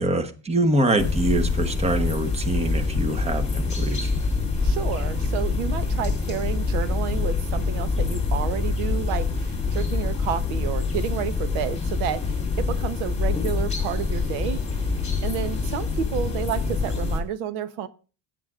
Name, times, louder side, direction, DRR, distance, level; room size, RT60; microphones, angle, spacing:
voice 1, 0.0-4.1, right 1 dB, 15° right, 1.0 m, -24 dB
sound 1, 1.0-17.2, left 4 dB, 15° left, 3.2 m, -25 dB
voice 2, 4.6-14.9 15.2-17.9, right 9 dB, 80° right, 1.1 m, -30 dB
16.5 x 9.1 x 2.4 m
cardioid pair, 135°, 50 cm